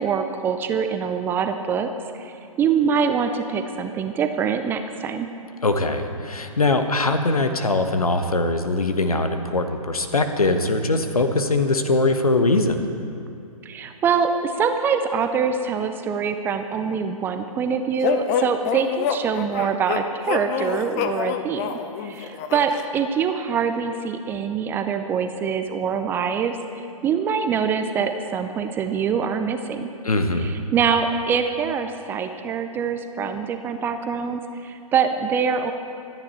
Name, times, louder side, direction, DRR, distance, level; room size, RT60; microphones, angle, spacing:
voice 1, 0.0-1.9 2.1-5.3 13.6-26.5 27.0-29.9 30.4-35.7, right 6 dB, 10° right, 7 dB, 0.4 m, -24 dB
voice 2, 5.6-12.9 30.0-30.5, left 2 dB, 80° left, 7 dB, 1.4 m, -21 dB
sound 1, 18.0-22.8, left 8 dB, 30° left, 0.7 m, -27 dB
25.0 x 9.7 x 4.4 m, 2.6 s
figure-of-eight pair, 125°, 19 cm